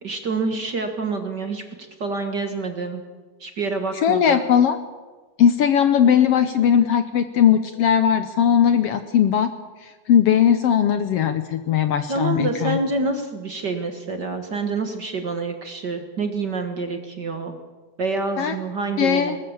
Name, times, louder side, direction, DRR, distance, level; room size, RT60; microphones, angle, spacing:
voice 1, 0.0-1.6 2.0-3.0 3.4-4.4 12.1-17.6 18.0-19.4, right 3 dB, 45° right, 6 dB, 1.7 m, -27 dB
voice 2, 3.9-4.8 5.4-9.5 10.1-12.8 18.4-18.5 19.0-19.4, left 8 dB, 65° left, 10 dB, 1.6 m, -18 dB
21.0 x 19.5 x 7.2 m, 1.3 s
omnidirectional pair, 3.4 m